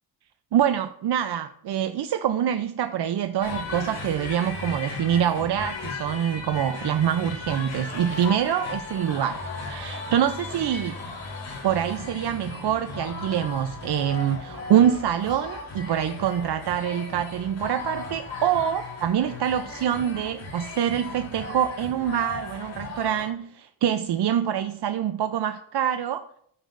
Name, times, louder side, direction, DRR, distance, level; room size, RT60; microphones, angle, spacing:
voice 1, 0.5-9.4 9.7-10.9 11.6-26.3, right 9 dB, 60° right, 0.6 m, -25 dB
sound 1, 3.4-23.2, left 3 dB, 75° left, 3.5 m, -36 dB
12.5 x 9.2 x 2.5 m
wide cardioid pair, 120°, 45 cm